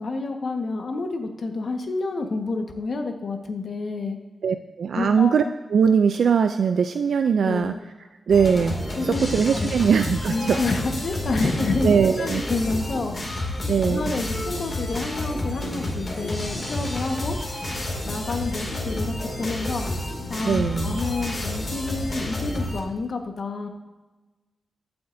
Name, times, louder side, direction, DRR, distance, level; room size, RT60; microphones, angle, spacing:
voice 1, 0.0-4.2 4.9-5.5 7.4-7.8 9.0-9.3 9.5-9.7 10.3-13.6 13.9-17.4 18.0-19.9 20.3-23.7, left 3 dB, 60° left, 4 dB, 1.4 m, -29 dB
voice 2, 4.4-5.4 5.7-7.7 8.3-10.6 11.4-11.5 11.8-12.4 13.7-14.1 20.4-21.0, right 6 dB, 85° right, 8 dB, 0.4 m, -21 dB
sound 1, 8.3-22.8, left 1 dB, 35° left, 2.6 m, -30 dB
23.5 x 7.8 x 2.7 m, 1.2 s
wide cardioid pair, 120°, 0 cm